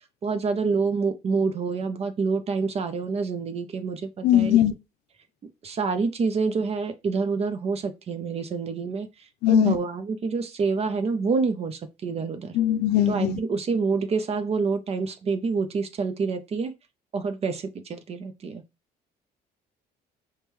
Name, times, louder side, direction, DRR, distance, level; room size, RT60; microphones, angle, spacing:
voice 1, 0.2-4.6 5.6-9.1 9.5-12.5 13.1-16.7 17.1-18.6, right 4 dB, 40° right, 0.6 m, -27 dB
voice 2, 4.2-4.7 9.4-9.8 12.5-13.4, left 11 dB, 80° left, 0.5 m, -20 dB
5.1 x 2.2 x 3.1 m
cardioid pair, 110°, 17 cm